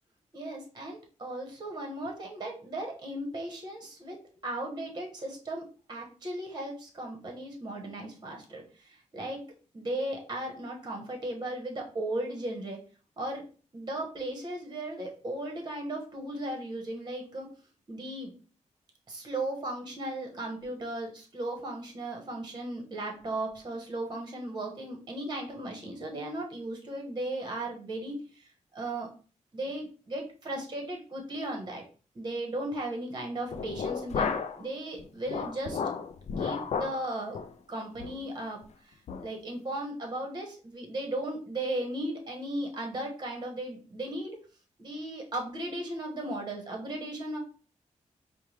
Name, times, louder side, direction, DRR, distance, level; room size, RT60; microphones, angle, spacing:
voice 1, 0.3-4.2 4.4-9.4 9.7-12.8 13.2-13.4 13.7-17.5 17.9-18.3 19.1-29.1 29.5-31.8 32.1-35.8 36.4-37.4 37.7-44.4 44.8-47.4, right 1 dB, 35° right, 1 dB, 1.2 m, -36 dB
sound 1, 33.5-34.6 35.0-37.0 37.3-37.5 38.0-38.2 38.6-38.7 39.1-39.3, left 6 dB, 60° left, 0.4 m, -33 dB
4.6 x 2.2 x 3.2 m, 0.38 s
wide cardioid pair, 105°, 13 cm